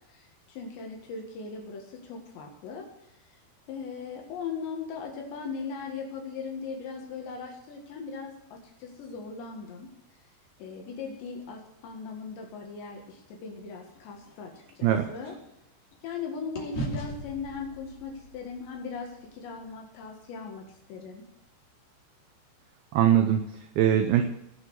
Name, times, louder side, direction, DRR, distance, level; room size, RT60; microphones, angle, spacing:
voice 1, 0.1-2.8 3.3-3.4 3.7-9.9 10.6-14.5 14.8-15.3 16.0-21.2, left 5 dB, 75° left, 1 dB, 4.1 m, -39 dB
sound 1, 13.9-16.2 16.5-20.8, equal, 45° left, 3.7 m, -41 dB
voice 2, 22.9-24.2, right 10 dB, 75° right, 6 dB, 2.4 m, -22 dB
19.5 x 6.7 x 6.5 m, 0.79 s
omnidirectional pair, 5.1 m